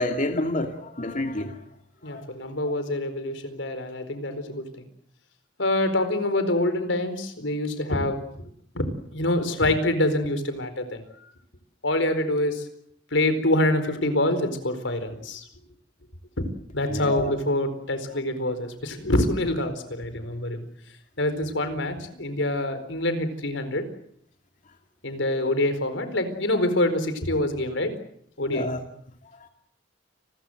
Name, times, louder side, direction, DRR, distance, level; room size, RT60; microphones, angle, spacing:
voice 1, 0.0-1.6 2.0-2.3 16.9-17.3 28.5-28.8 29.4-29.5, left 1 dB, 45° left, 5 dB, 2.5 m, -28 dB
voice 2, 2.0-4.9 5.6-8.2 8.7-8.9 9.1-11.0 11.8-12.6 13.1-15.4 16.4-16.5 16.7-20.6 21.2-23.8 25.0-27.9 28.4-28.7, left 1 dB, 85° left, 10 dB, 4.5 m, -26 dB
30.0 x 21.5 x 7.9 m, 0.68 s
head